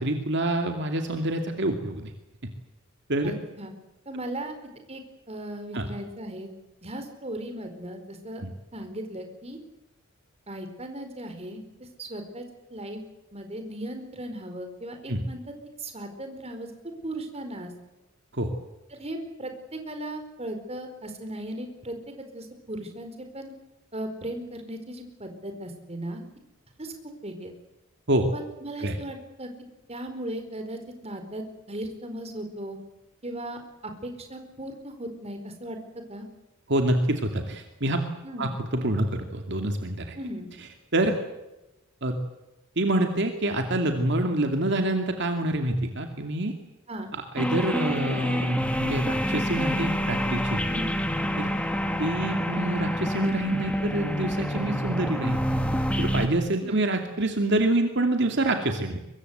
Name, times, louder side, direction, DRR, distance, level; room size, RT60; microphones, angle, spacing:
voice 1, 0.0-2.1 3.1-3.3 5.7-5.9 8.4-8.5 15.1-15.2 18.3-18.5 28.1-28.3 28.8-29.0 36.7-38.0 38.4-40.2 40.9-41.1 42.0-42.1 42.8-46.5 47.3-50.6 51.4-51.5 52.0-55.4 56.0-59.0, right 1 dB, 60° right, 4 dB, 2.6 m, -26 dB
voice 2, 3.2-3.7 4.1-4.6 4.9-5.0 5.3-6.5 6.8-8.4 8.7-9.6 10.5-12.4 12.7-13.0 13.3-15.4 15.8-16.7 17.0-17.7 18.9-23.5 23.9-26.2 26.8-26.9 27.2-27.5 28.3-29.5 29.9-32.8 33.2-35.8 36.1-36.3 38.2-38.5 40.1-40.5 46.9-47.1 50.7-50.9 56.6-56.8, right 1 dB, 30° right, 6 dB, 4.6 m, -37 dB
sound 1, 47.4-56.3, equal, 5° left, 2.3 m, -27 dB
24.0 x 22.5 x 8.1 m, 0.98 s
head